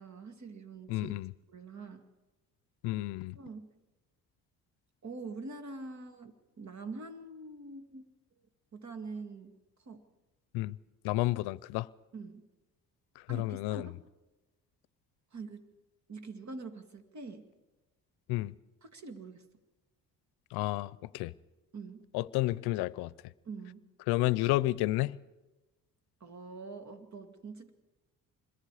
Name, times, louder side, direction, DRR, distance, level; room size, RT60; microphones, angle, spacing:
voice 1, 0.0-1.1 1.5-2.1 3.4-3.7 5.0-8.0 8.7-9.5 9.9-10.0 12.1-12.5 13.3-13.9 15.3-15.7 16.1-17.5 18.8-19.4 21.7-22.1 23.5-23.9 26.2-27.7, right 3 dB, 45° right, 2.4 m, -44 dB
voice 2, 0.9-1.3 2.8-3.4 10.5-10.8 11.0-11.9 13.2-13.9 18.3-18.6 20.5-21.3 22.1-23.3 24.1-25.2, left 18 dB, 90° left, 0.6 m, -31 dB
26.0 x 21.5 x 4.9 m
cardioid pair, 85°, 38 cm